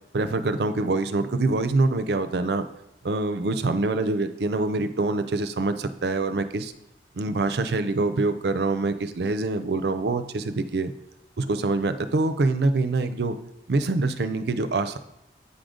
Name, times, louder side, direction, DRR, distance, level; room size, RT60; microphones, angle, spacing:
voice 1, 0.1-2.6 3.0-6.7 7.2-10.9 11.4-13.3 13.7-15.0, right 3 dB, 70° right, 10 dB, 0.5 m, -25 dB
8.4 x 3.8 x 5.0 m, 0.82 s
head